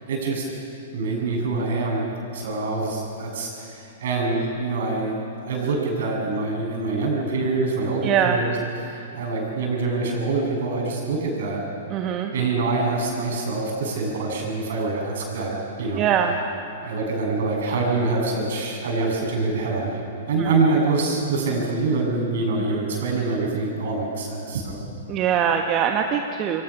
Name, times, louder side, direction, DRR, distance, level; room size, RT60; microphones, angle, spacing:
voice 1, 0.1-0.5 0.9-2.1 2.3-8.5 8.8-11.6 12.3-16.0 16.8-24.8, right 3 dB, 60° right, 0 dB, 7.8 m, -25 dB
voice 2, 8.0-8.4 11.9-12.3 16.0-16.4 20.4-20.8 22.7-22.8 25.1-26.6, right 8 dB, 30° right, 4 dB, 1.4 m, -23 dB
27.5 x 24.0 x 6.2 m, 2.6 s
figure-of-eight pair, 110°, 0 cm